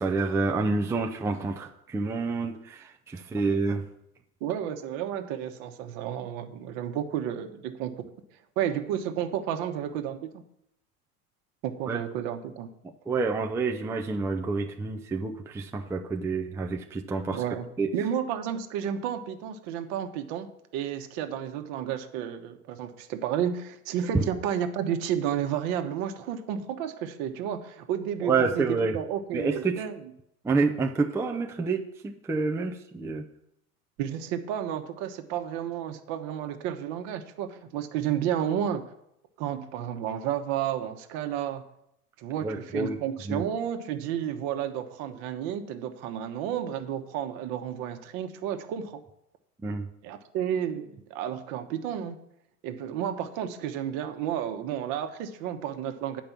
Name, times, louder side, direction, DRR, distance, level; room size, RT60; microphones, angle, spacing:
voice 1, 0.0-3.8 11.9-12.0 13.1-17.4 17.8-17.9 24.1-24.2 28.2-29.0 29.3-29.8 30.4-33.2 42.4-43.0 43.3-43.4 49.6-49.8, right 4 dB, 5° right, 3 dB, 0.5 m, -28 dB
voice 2, 4.4-8.1 8.6-10.3 11.6-12.7 17.3-17.7 17.9-20.5 20.7-30.0 34.0-38.8 39.4-41.6 42.2-49.0 50.0-52.2 52.6-56.2, right 9 dB, 50° right, 7 dB, 1.2 m, -31 dB
8.9 x 5.3 x 7.2 m, 0.79 s
hypercardioid pair, 95°, 46 cm